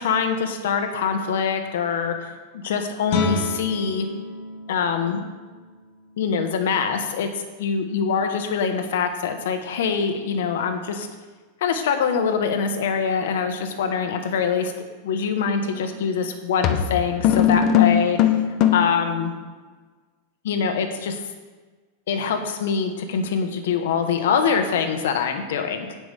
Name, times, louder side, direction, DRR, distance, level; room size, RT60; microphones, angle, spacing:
voice 1, 0.0-2.3 2.6-4.1 4.7-5.2 6.2-11.1 11.6-14.7 15.0-18.3 18.7-19.3 20.4-21.2 22.1-25.9, left 6 dB, 80° left, 6 dB, 1.4 m, -24 dB
Guitar, 3.1-8.6, left 5 dB, 60° left, 1.6 m, -33 dB
sound 1, 15.7-16.0 16.6-19.0, left 10 dB, 40° left, 0.8 m, -19 dB
17.5 x 6.1 x 3.6 m, 1.4 s
supercardioid pair, 150°, 0 cm